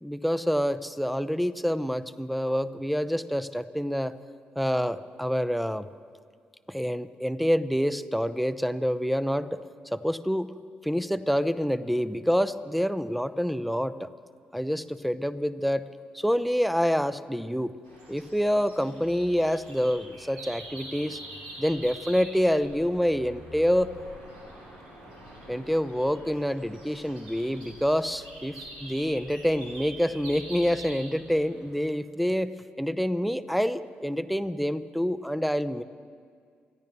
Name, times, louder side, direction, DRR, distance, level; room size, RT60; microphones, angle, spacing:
voice 1, 0.0-4.2 4.6-5.9 6.7-9.6 9.9-10.5 10.8-14.1 14.5-15.8 16.1-17.7 18.1-21.2 21.6-23.9 25.5-32.5 32.8-35.8, equal, ahead, 14 dB, 0.7 m, -27 dB
sound 1, 17.8-31.8, right 1 dB, 85° right, 4.1 m, -45 dB
25.5 x 15.0 x 3.1 m, 2.1 s
hypercardioid pair, 45°, 5 cm